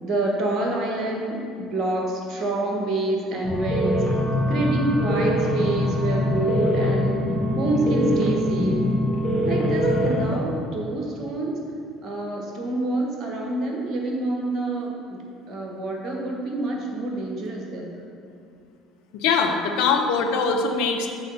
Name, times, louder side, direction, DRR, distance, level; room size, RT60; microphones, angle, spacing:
voice 1, 0.0-4.0 4.5-7.2 7.6-8.8 9.4-11.6 12.0-15.2 15.5-17.9, right 2 dB, 40° right, 0 dB, 1.3 m, -27 dB
sound 1, 3.4-10.4, equal, 35° left, 2.0 m, -23 dB
voice 2, 19.1-21.1, left 5 dB, 65° left, 3 dB, 0.7 m, -22 dB
8.0 x 3.8 x 6.8 m, 2.5 s
figure-of-eight pair, 60°, 0 cm